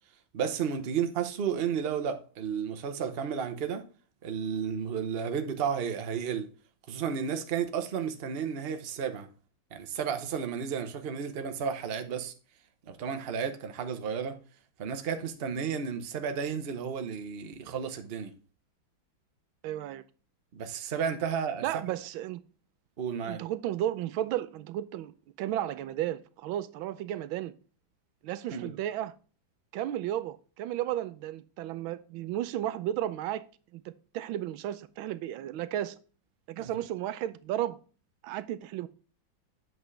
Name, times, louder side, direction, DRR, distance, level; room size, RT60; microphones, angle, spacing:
voice 1, 0.3-3.8 4.2-6.5 6.9-9.3 9.7-12.3 12.9-14.4 14.8-18.3 20.5-21.6 23.0-23.4 28.5-28.8 36.6-36.7, right 7 dB, 45° right, 0.8 m, -32 dB
voice 2, 19.6-20.0 21.6-22.4 23.2-25.1 25.4-27.5 28.2-29.1 29.7-33.5 33.7-36.0 36.5-37.8 38.2-38.9, right 12 dB, 90° right, 1.4 m, -33 dB
8.0 x 6.1 x 3.2 m
omnidirectional pair, 2.2 m